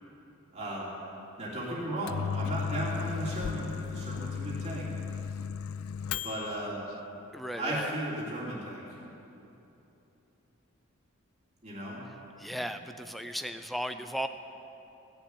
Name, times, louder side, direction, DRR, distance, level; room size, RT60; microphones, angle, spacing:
voice 1, 0.5-0.9 1.4-4.9 6.1-6.8 7.6-8.8 11.6-12.0, right 1 dB, 30° right, -6 dB, 3.0 m, -35 dB
Microwave oven, 1.8-6.6, left 6 dB, 75° left, 0.4 m, -35 dB
voice 2, 7.3-7.9 12.4-14.3, equal, ahead, 9 dB, 0.5 m, -36 dB
15.5 x 7.0 x 9.4 m, 2.9 s
head